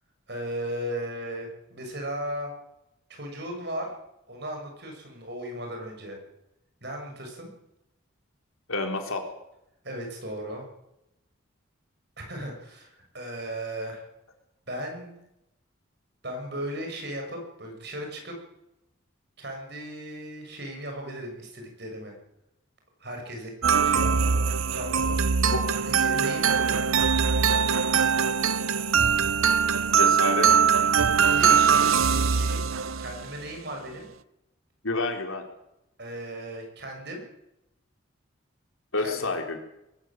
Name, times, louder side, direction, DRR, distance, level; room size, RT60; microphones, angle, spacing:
voice 1, 0.3-2.5 3.1-3.9 4.3-6.2 6.8-7.5 9.8-10.7 12.2-14.0 14.7-15.2 16.2-18.4 19.4-22.2 23.0-23.5 23.8-25.2 25.8-26.8 31.2-32.6 33.0-34.1 36.0-37.2 39.0-39.2, right 1 dB, 55° right, 2 dB, 7.1 m, -36 dB
voice 2, 8.7-9.2 30.0-30.6 34.8-35.4 38.9-39.6, left 3 dB, 85° left, 3 dB, 3.9 m, -29 dB
sound 1, 23.6-33.3, right 6 dB, 85° right, 0.8 m, -22 dB
22.0 x 14.0 x 9.0 m, 0.87 s
head